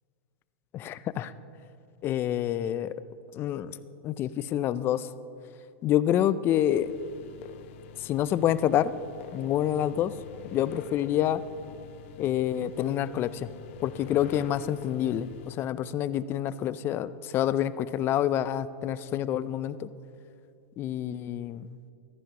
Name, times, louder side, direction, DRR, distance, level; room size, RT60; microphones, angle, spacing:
voice 1, 0.7-1.3 2.0-2.9 3.3-3.7 4.0-5.1 5.8-6.9 8.0-8.9 9.3-10.1 10.5-11.4 12.2-13.5 13.8-19.9 20.8-21.7, left 11 dB, 30° left, 16 dB, 0.4 m, -27 dB
sound 1, 6.7-15.5, left 9 dB, 60° left, 0.8 m, -46 dB
14.5 x 14.0 x 3.0 m, 2.8 s
hypercardioid pair, 130°, 7 cm